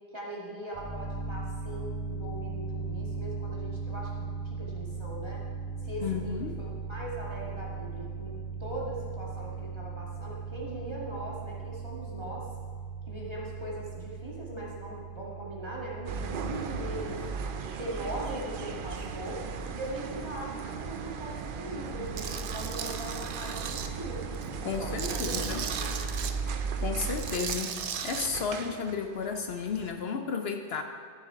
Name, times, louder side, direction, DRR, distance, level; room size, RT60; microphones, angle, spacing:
voice 1, 0.1-5.4 5.8-12.5 13.1-17.3 17.8-19.4 19.7-24.3 24.6-25.4 25.7-26.1, right 1 dB, 25° right, -5 dB, 2.2 m, -40 dB
sound 1, 0.7-17.1, right 4 dB, 15° left, 2.5 m, -38 dB
voice 2, 6.0-6.6 24.6-25.6 26.8-27.7 28.0-30.8, left 5 dB, 65° left, 5 dB, 0.9 m, -33 dB
sound 2, 16.1-29.9, right 5 dB, 55° right, 0.7 m, -36 dB
Tools, 22.2-23.9 24.3-26.3 27.1-28.3, right 7 dB, 80° right, 1.0 m, -36 dB
13.5 x 7.0 x 4.7 m, 2.1 s
omnidirectional pair, 1.1 m